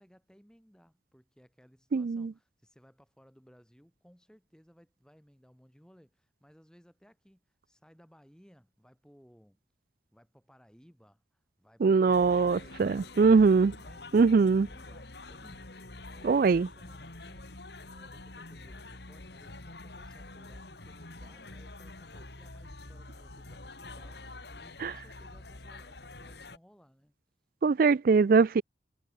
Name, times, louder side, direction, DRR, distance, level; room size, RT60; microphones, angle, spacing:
voice 1, 0.0-9.6 10.1-17.6 17.8-27.1, equal, 5° left, 6.9 m, -60 dB
voice 2, 1.9-2.3 11.8-13.7 14.1-14.7 16.2-16.7 24.8-24.9 27.6-28.6, right 4 dB, 50° right, 0.3 m, -22 dB
sound 1, 12.1-26.6, left 2 dB, 65° left, 2.6 m, -47 dB
sound 2, 12.5-13.3 13.7-14.1 14.5-14.7 15.2-15.6 17.4-17.5, left 3 dB, 80° left, 4.3 m, -57 dB
head